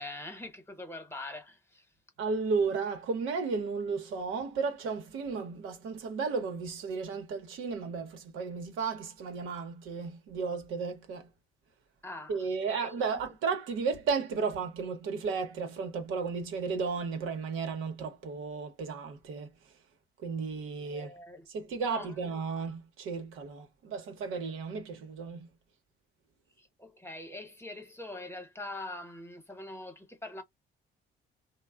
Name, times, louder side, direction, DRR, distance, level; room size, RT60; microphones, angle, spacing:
voice 1, 0.0-1.9 12.0-13.2 20.9-21.5 21.8-22.1 26.6-30.4, left 2 dB, 10° left, 1.0 m, -43 dB
voice 2, 2.2-11.3 12.3-19.5 20.2-21.1 21.5-25.5, right 5 dB, 90° right, 0.9 m, -34 dB
3.2 x 2.1 x 2.3 m
cardioid pair, 90°, 20 cm